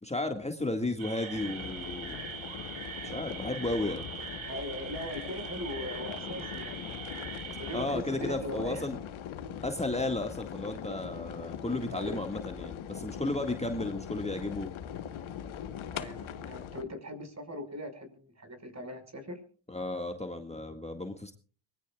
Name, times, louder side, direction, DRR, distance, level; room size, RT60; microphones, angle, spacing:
voice 1, 0.0-2.2 3.0-4.1 7.7-9.0 9.6-14.7 19.7-21.3, left 2 dB, 15° left, 5 dB, 1.9 m, -33 dB
sound 1, 1.0-7.8, right 6 dB, 75° right, 6.9 m, -42 dB
sound 2, 1.3-16.8, left 9 dB, 90° left, 1.4 m, -41 dB
voice 2, 4.5-7.1 7.5-8.9 11.9-12.2 15.9-19.4, left 1 dB, 35° right, 7 dB, 5.4 m, -40 dB
24.0 x 20.5 x 2.4 m, 0.40 s
cardioid pair, 65°, 47 cm